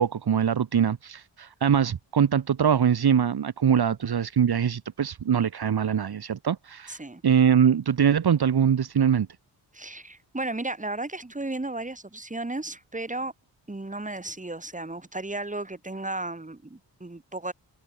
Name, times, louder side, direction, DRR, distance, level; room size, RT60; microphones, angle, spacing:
voice 1, 0.0-7.0 7.2-9.3, right 8 dB, 60° right, 2.7 m, -23 dB
voice 2, 6.9-7.2 9.7-13.3 13.7-17.5, right 2 dB, 15° right, 7.7 m, -34 dB
cardioid pair, 90°, 44 cm